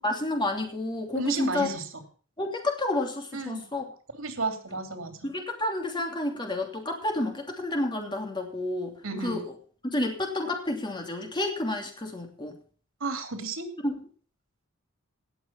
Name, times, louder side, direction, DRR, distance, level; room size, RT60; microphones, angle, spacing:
voice 1, 0.0-1.7 2.4-3.8 5.2-9.4 9.9-12.6 13.8-14.0, left 1 dB, 25° left, 3 dB, 2.9 m, -30 dB
voice 2, 1.1-1.9 3.3-3.6 4.1-5.2 9.0-9.4 13.0-13.7, right 3 dB, 90° right, 6 dB, 2.9 m, -32 dB
18.0 x 7.1 x 5.9 m, 0.44 s
head